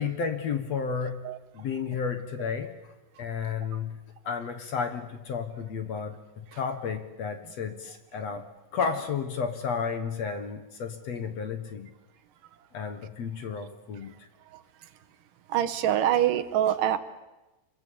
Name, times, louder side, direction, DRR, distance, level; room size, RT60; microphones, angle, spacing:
voice 1, 0.0-1.3 1.5-2.8 3.2-4.0 4.3-8.4 8.7-11.9 12.7-14.1, left 6 dB, 55° left, 8 dB, 2.4 m, -32 dB
voice 2, 15.5-17.0, right 11 dB, 75° right, 11 dB, 2.6 m, -25 dB
26.5 x 22.5 x 8.6 m, 1.0 s
omnidirectional pair, 4.1 m